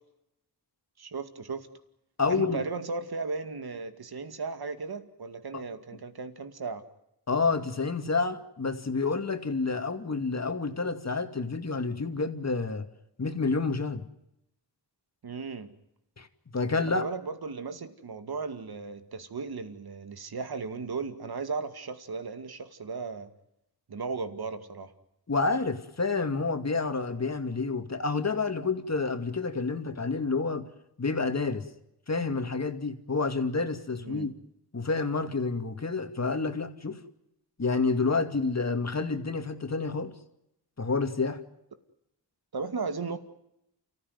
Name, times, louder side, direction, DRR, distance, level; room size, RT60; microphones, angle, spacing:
voice 1, 1.0-1.7 2.3-6.8 15.2-15.7 16.9-23.3 23.9-24.9 34.0-34.3 42.5-43.2, right 4 dB, 60° right, 9 dB, 2.3 m, -36 dB
voice 2, 2.2-2.6 5.5-5.6 7.3-12.9 13.2-14.1 16.2-16.3 16.5-17.1 25.3-30.7 31.0-31.7 32.1-34.3 34.7-37.0 37.6-40.1 40.8-41.4, left 4 dB, 40° left, 7 dB, 2.5 m, -29 dB
29.5 x 15.0 x 9.5 m, 0.84 s
cardioid pair, 65°, 42 cm